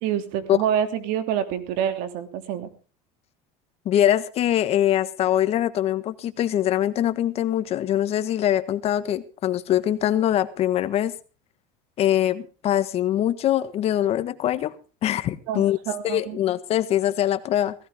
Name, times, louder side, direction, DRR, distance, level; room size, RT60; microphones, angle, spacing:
voice 1, 0.0-2.7 15.5-16.4, right 9 dB, 70° right, 9 dB, 2.9 m, -27 dB
voice 2, 3.8-11.1 12.0-14.7 15.0-15.8 16.0-17.7, left 11 dB, 45° left, 12 dB, 1.5 m, -23 dB
17.0 x 15.5 x 3.7 m, 0.35 s
supercardioid pair, 125°, 15 cm